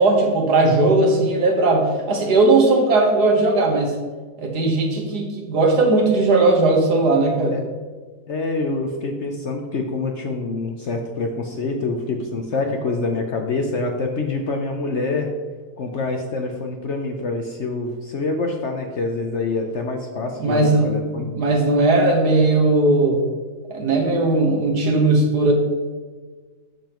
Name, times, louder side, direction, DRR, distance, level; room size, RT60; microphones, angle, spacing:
voice 1, 0.0-3.9 4.4-7.6 20.4-23.2 23.7-25.5, right 2 dB, 70° right, 1 dB, 1.8 m, -18 dB
voice 2, 8.3-15.3 15.8-21.3, left 3 dB, 55° left, 3 dB, 0.8 m, -26 dB
10.5 x 7.0 x 3.0 m, 1.4 s
omnidirectional pair, 1.8 m